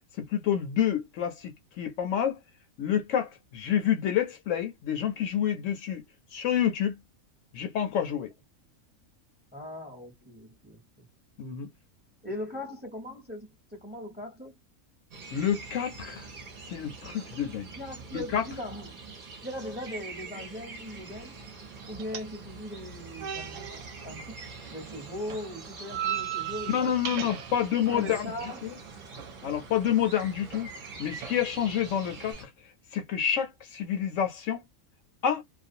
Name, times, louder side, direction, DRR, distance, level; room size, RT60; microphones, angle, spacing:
voice 1, 0.2-2.4 2.8-6.0 6.3-7.0 7.5-8.3 11.4-11.7 15.3-16.3 16.7-17.7 18.3-18.4 26.7-28.7 29.4-30.7 31.0-32.5 32.9-34.6 35.2-35.4, left 9 dB, 70° left, 0.9 m, -28 dB
voice 2, 9.5-10.8 12.2-14.5 17.8-19.0 19.4-21.3 21.9-24.3 24.7-27.2 27.8-28.6, left 1 dB, 10° right, 0.7 m, -39 dB
sound 1, 15.1-32.4, right 4 dB, 45° right, 0.8 m, -45 dB
sound 2, 20.8-32.3, right 10 dB, 70° right, 0.9 m, -41 dB
2.4 x 2.2 x 2.6 m
omnidirectional pair, 1.5 m